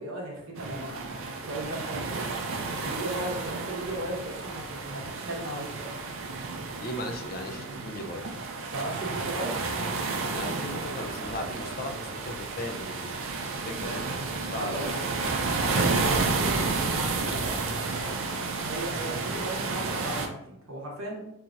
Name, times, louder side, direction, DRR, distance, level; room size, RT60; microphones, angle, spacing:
voice 1, 0.0-2.3 2.7-6.0 8.7-9.6 14.5-15.0 15.6-16.6 16.9-17.7 18.6-21.2, right 1 dB, 85° right, -1 dB, 1.1 m, -36 dB
sound 1, 0.6-20.3, right 3 dB, 70° right, 0.5 m, -31 dB
voice 2, 6.8-8.4 10.3-13.3 13.7-15.1, left 1 dB, 45° left, 4 dB, 0.5 m, -37 dB
4.7 x 2.8 x 2.5 m, 0.82 s
head